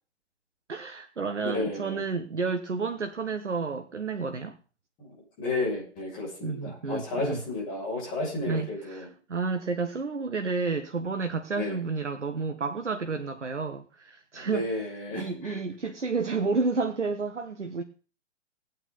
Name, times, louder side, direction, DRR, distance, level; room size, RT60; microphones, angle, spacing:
voice 1, 0.7-4.6 6.4-7.4 8.4-14.8 15.1-17.8, right 4 dB, 75° right, 9 dB, 1.1 m, -31 dB
voice 2, 1.4-2.0 5.0-9.1 11.5-11.8 14.3-15.6, left 2 dB, 25° left, -2 dB, 6.7 m, -32 dB
18.0 x 9.0 x 4.1 m, 0.38 s
figure-of-eight pair, 125°, 36 cm